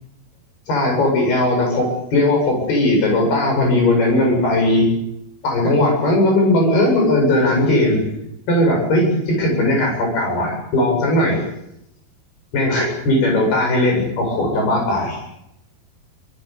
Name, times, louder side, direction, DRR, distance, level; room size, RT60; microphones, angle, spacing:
voice 1, 0.7-4.9 5.4-8.1 8.5-11.4 12.5-15.2, left 1 dB, 65° left, 1 dB, 10.0 m, -18 dB
26.5 x 25.5 x 7.2 m, 0.82 s
omnidirectional pair, 4.8 m